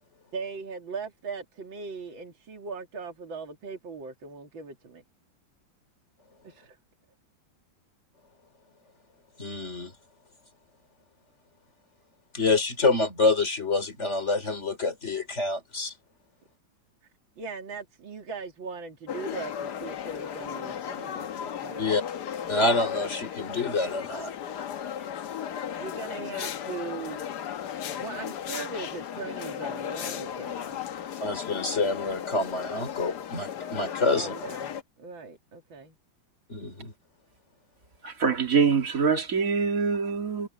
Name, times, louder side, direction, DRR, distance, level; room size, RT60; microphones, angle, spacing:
voice 1, 0.3-5.0 6.4-6.8 17.4-21.9 25.8-27.2 28.0-30.8 34.1-36.0, right 4 dB, 75° right, 3.2 m, -39 dB
voice 2, 9.4-9.9 12.3-15.9 21.8-22.0 22.5-24.3 31.2-34.3 36.5-36.9, left 3 dB, 35° left, 4.1 m, -27 dB
sound 1, 19.1-34.8, left 9 dB, 60° left, 1.5 m, -35 dB
voice 3, 38.0-40.5, right 5 dB, 45° right, 2.7 m, -24 dB
omnidirectional pair, 2.1 m